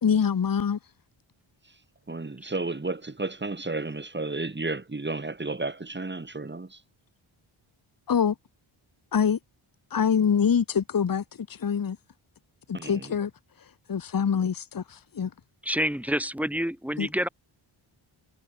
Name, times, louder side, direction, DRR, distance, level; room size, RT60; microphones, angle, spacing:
voice 1, 0.0-0.8 8.1-8.3 9.1-9.4 9.9-12.0 12.7-13.3 13.9-15.3 17.0-17.1, left 7 dB, 45° left, 1.3 m, -25 dB
voice 2, 2.1-6.8 12.7-13.2, right 3 dB, 20° right, 4.8 m, -32 dB
voice 3, 15.6-17.3, equal, 5° right, 3.4 m, -28 dB
wide cardioid pair, 150°, 49 cm